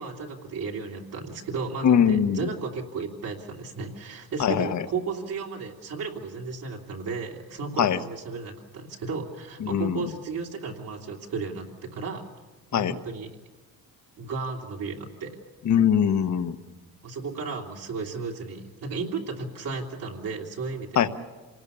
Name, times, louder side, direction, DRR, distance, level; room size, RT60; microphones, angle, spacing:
voice 1, 0.0-12.2 12.7-13.3 14.2-15.4 17.0-21.1, right 4 dB, 65° right, -2 dB, 3.0 m, -34 dB
voice 2, 1.8-2.5 4.4-4.8 7.8-8.0 9.6-10.0 12.7-12.9 15.6-16.5 21.0-21.1, left 8 dB, 55° left, 10 dB, 1.2 m, -22 dB
27.0 x 19.0 x 7.0 m, 1.2 s
cardioid pair, 120°, 36 cm